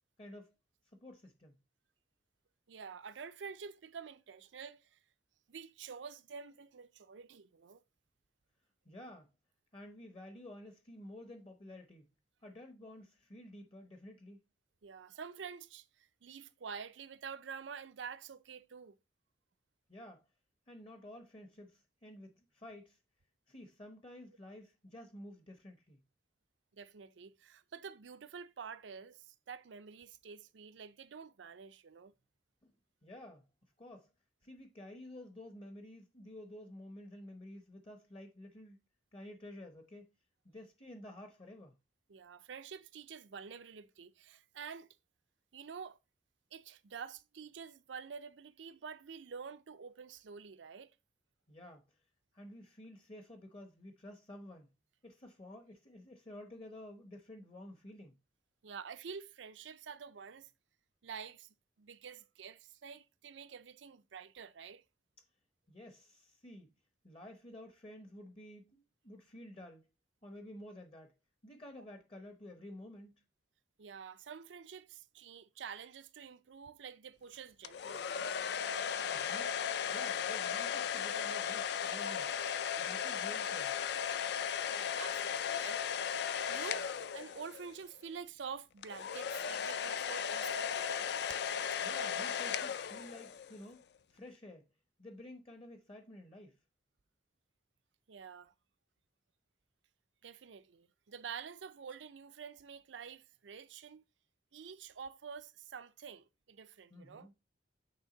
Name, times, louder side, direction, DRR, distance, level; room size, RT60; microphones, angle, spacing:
voice 1, 0.2-0.5 0.9-1.6 8.9-9.3 9.7-12.1 12.4-14.4 19.9-20.2 20.7-23.0 23.5-26.0 32.6-32.7 33.0-33.5 33.8-34.1 34.4-38.8 39.1-40.1 40.4-41.8 51.5-52.0 52.3-54.7 55.0-58.2 65.7-66.7 67.0-69.9 70.2-71.1 71.4-73.1 79.0-82.3 82.8-83.7 91.8-94.7 95.0-96.6 106.9-107.3, left 1 dB, 30° left, 0.9 m, -51 dB
voice 2, 2.7-5.0 5.5-7.8 14.8-19.0 26.7-32.1 42.1-44.9 45.5-46.0 46.5-50.9 58.6-60.5 61.0-64.8 73.8-78.4 84.7-85.8 86.5-91.1 98.1-98.5 100.2-104.0 104.5-107.3, right 6 dB, 85° right, 0.5 m, -48 dB
sound 1, 77.6-87.8 88.8-93.6, left 8 dB, 60° left, 0.4 m, -36 dB
8.9 x 3.5 x 3.9 m
head